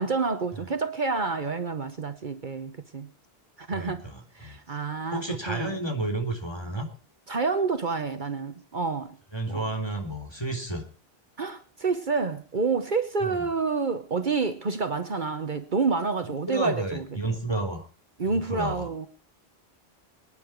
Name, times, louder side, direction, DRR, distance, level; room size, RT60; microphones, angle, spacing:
voice 1, 0.0-3.1 3.6-4.0 4.4-5.8 7.3-9.2 9.5-9.6 11.4-17.1 18.2-19.1, right 4 dB, 50° right, 1.2 m, -28 dB
voice 2, 3.7-4.6 5.1-6.9 9.3-10.8 13.2-13.5 16.2-17.8 18.3-18.9, right 2 dB, 25° left, 3.6 m, -31 dB
24.5 x 10.0 x 4.6 m
omnidirectional pair, 1.0 m